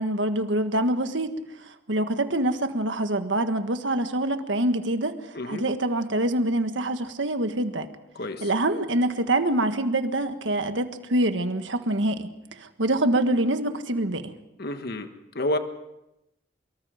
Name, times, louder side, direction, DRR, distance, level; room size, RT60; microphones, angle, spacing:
voice 1, 0.0-1.4 1.6-5.2 5.5-7.9 8.4-12.3 12.6-14.3, right 1 dB, 70° right, 8 dB, 1.6 m, -25 dB
voice 2, 8.1-8.5 14.6-15.1 15.3-15.6, left 1 dB, 55° left, 8 dB, 1.4 m, -29 dB
24.5 x 22.5 x 5.1 m, 0.90 s
head